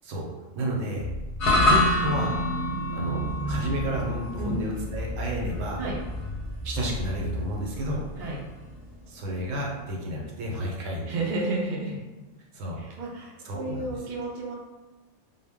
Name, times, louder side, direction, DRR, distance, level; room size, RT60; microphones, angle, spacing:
voice 1, 0.5-1.1 1.6-2.4 2.9-5.8 6.6-8.1 9.1-11.1 12.5-12.8 13.4-13.9, equal, 80° right, -1 dB, 1.0 m, -31 dB
sound 1, 1.0-8.5, left 2 dB, 30° left, 0.7 m, -36 dB
sound 2, 1.4-9.8, left 1 dB, 65° left, 0.8 m, -28 dB
voice 2, 11.1-12.0 12.8-14.6, right 2 dB, 55° right, -3 dB, 0.5 m, -31 dB
2.2 x 2.0 x 3.4 m, 1.2 s
omnidirectional pair, 1.3 m